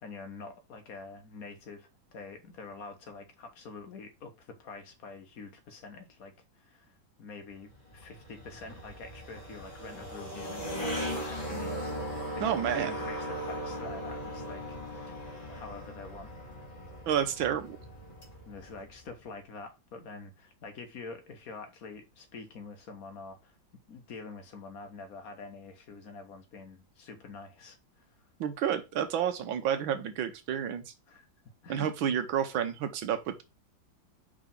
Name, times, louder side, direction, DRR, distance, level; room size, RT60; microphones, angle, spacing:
voice 1, 0.0-10.9 11.2-15.2 15.5-16.3 18.4-23.6 23.9-28.1 31.1-31.3 31.6-31.9, left 4 dB, 50° left, 1.4 m, -46 dB
sound 1, 7.6-19.2, equal, 20° left, 2.1 m, -38 dB
voice 2, 12.4-12.9 17.1-17.8 28.4-30.9 31.7-33.4, right 9 dB, 90° right, 1.7 m, -30 dB
5.0 x 4.0 x 5.3 m
omnidirectional pair, 2.1 m